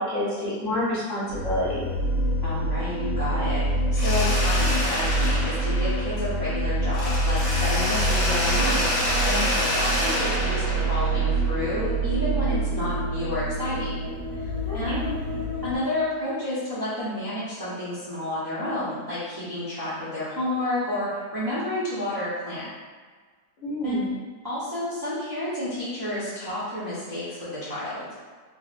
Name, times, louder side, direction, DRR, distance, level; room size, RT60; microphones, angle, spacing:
voice 1, 0.0-1.9 14.6-15.1 23.6-24.1, equal, 55° left, -8 dB, 1.0 m, -28 dB
sound 1, 1.3-15.8, right 1 dB, 55° right, 0.8 m, -26 dB
voice 2, 2.4-8.9 9.2-13.9 14.3-15.1 15.6-22.7 23.8-24.0 24.4-28.1, left 1 dB, 30° right, -12 dB, 0.4 m, -30 dB
Mechanisms, 3.9-6.5 6.9-11.8, left 1 dB, 75° left, 1.4 m, -28 dB
3.9 x 2.1 x 2.4 m, 1.5 s
omnidirectional pair, 1.8 m